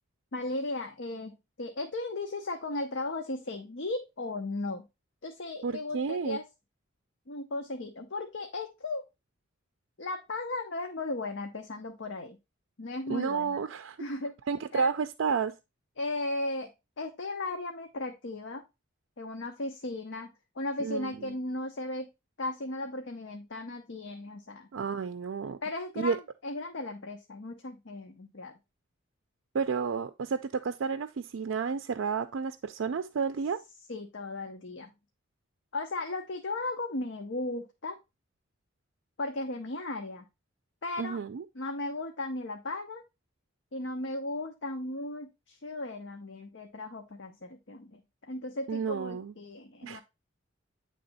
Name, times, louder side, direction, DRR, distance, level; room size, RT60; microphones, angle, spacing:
voice 1, 0.3-4.8 5.2-6.4 7.3-9.0 10.0-12.4 12.8-13.6 14.0-14.3 14.7-14.9 16.0-16.7 17.0-18.6 19.2-20.3 20.6-22.1 22.4-24.7 25.6-28.5 33.9-34.9 35.7-38.0 39.2-40.2 40.8-41.2 41.5-43.0 43.7-48.0 48.3-50.0, left 2 dB, 65° left, 0.8 m, -36 dB
voice 2, 5.6-6.4 13.1-14.0 14.5-15.5 20.8-21.4 24.7-25.6 26.0-26.2 29.5-33.6 41.0-41.4 48.7-49.3 49.8-50.0, right 5 dB, 75° right, 0.4 m, -31 dB
8.8 x 3.4 x 4.0 m
head